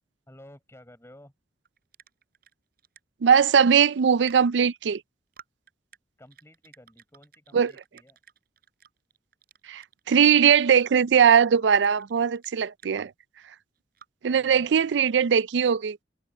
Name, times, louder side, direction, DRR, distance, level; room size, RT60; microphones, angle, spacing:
voice 1, 0.3-1.3 6.2-8.2 14.2-14.8, left 1 dB, 15° left, 4.7 m, -52 dB
sound 1, 1.6-2.5 2.8-3.0 3.2-4.6 4.9-5.0 5.3-6.0 6.2-13.0 13.8-14.1, right 8 dB, 55° right, 4.4 m, -52 dB
voice 2, 3.2-5.0 7.5-7.7 9.7-13.1 14.2-16.0, right 7 dB, 75° right, 0.4 m, -20 dB
head